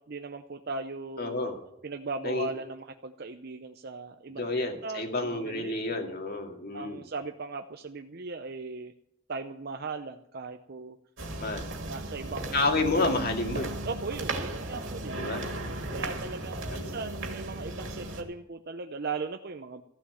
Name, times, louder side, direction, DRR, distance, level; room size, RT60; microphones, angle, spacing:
voice 1, 0.0-1.5 1.8-4.5 4.8-6.0 6.7-8.9 9.3-11.0 11.9-12.6 13.8-15.3 15.9-19.8, right 4 dB, 50° right, 6 dB, 0.6 m, -38 dB
voice 2, 1.2-1.6 2.2-2.5 4.4-7.0 11.4-11.7 12.5-13.7 15.2-15.5 15.9-16.2 16.7-16.9, left 2 dB, 50° left, 3 dB, 2.2 m, -30 dB
sound 1, 11.2-18.2, right 2 dB, 65° right, 2.3 m, -36 dB
14.5 x 7.2 x 9.1 m, 0.78 s
head